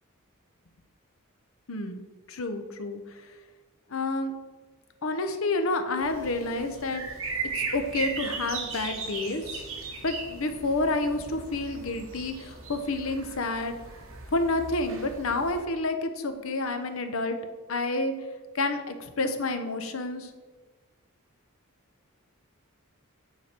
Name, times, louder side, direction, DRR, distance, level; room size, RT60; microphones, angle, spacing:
voice 1, 1.7-2.0 2.3-3.3 3.9-4.3 5.0-7.0 7.5-9.5 10.0-13.7 14.3-17.4 17.7-18.1 18.5-20.3, left 2 dB, 70° left, 7 dB, 0.8 m, -29 dB
sound 1, 6.0-15.6, right 4 dB, 70° right, 1.3 m, -38 dB
9.2 x 5.0 x 4.4 m, 1.3 s
head